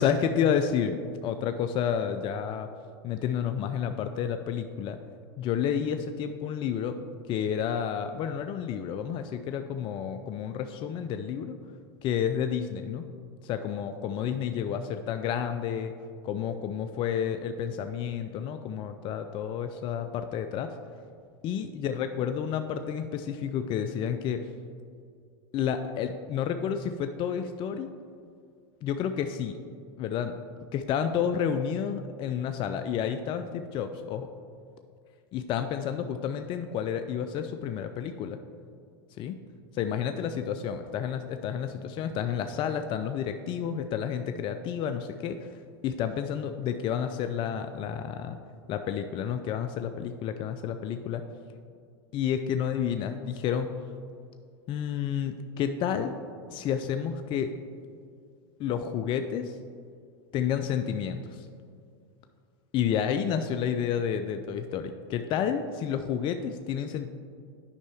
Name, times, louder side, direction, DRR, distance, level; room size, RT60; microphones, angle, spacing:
voice 1, 0.0-2.7 3.0-5.0 5.4-7.0 7.3-11.5 12.0-13.1 13.4-15.9 16.2-20.7 21.4-24.4 25.5-27.9 28.8-29.6 30.0-30.4 30.7-34.3 35.3-38.4 39.2-39.4 39.7-48.4 48.7-51.2 52.1-53.7 54.7-56.1 56.5-57.5 58.6-59.6 60.3-61.5 62.7-67.1, left 8 dB, 40° left, 8 dB, 0.4 m, -30 dB
9.5 x 5.4 x 3.4 m, 2.2 s
hypercardioid pair, 100°, 14 cm